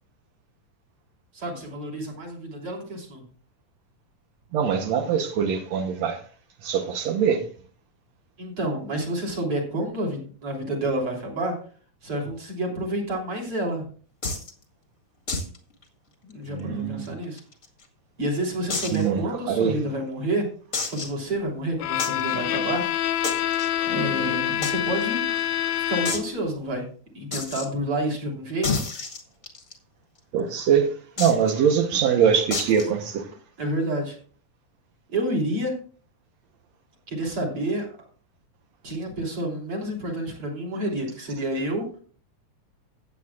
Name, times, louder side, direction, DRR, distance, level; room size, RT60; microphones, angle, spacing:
voice 1, 1.3-3.2 8.4-11.6 12.0-13.9 16.2-17.4 18.2-20.5 20.9-23.2 23.8-25.3 25.8-26.9 27.1-28.8 33.6-34.2 35.1-35.7 37.1-38.0 38.8-41.9, right 1 dB, 40° right, 3.9 m, -29 dB
voice 2, 4.5-6.2 6.6-7.4 16.5-17.1 18.9-19.2 19.5-19.7 30.3-30.9 31.2-33.3, right 7 dB, 70° right, 1.8 m, -22 dB
sound 1, 14.2-14.5 15.3-15.6 15.8-15.9 16.3-16.4 17.1-17.8 18.7-19.1 19.6-19.7 20.7-21.2 22.0-22.2 23.2-23.7 24.6-24.7 25.0-25.1 25.4-25.5 26.0-26.3 27.3-27.7 28.6-29.7 31.2-31.5 32.5-32.9, left 3 dB, 35° left, 1.4 m, -29 dB
Bowed string instrument, 21.8-26.5, left 12 dB, 80° left, 1.9 m, -26 dB
16.0 x 9.1 x 2.4 m
omnidirectional pair, 3.9 m